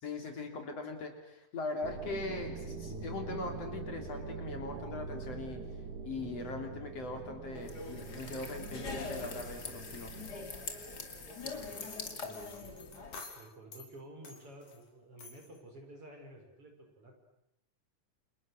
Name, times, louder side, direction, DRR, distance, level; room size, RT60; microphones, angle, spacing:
voice 1, 0.0-5.6 6.0-10.1, left 2 dB, 55° left, 4 dB, 4.2 m, -40 dB
sound 1, 1.8-10.5, right 4 dB, 75° right, 3.5 m, -44 dB
sound 2, 7.5-13.2, left 3 dB, 35° left, 2.9 m, -43 dB
voice 2, 11.1-11.8 12.2-17.1, right 1 dB, 45° right, 2 dB, 6.6 m, -52 dB
sound 3, 11.3-13.9 14.2-14.8 15.2-15.6, left 4 dB, 80° left, 5.0 m, -51 dB
30.0 x 28.5 x 6.6 m, 0.80 s
omnidirectional pair, 3.5 m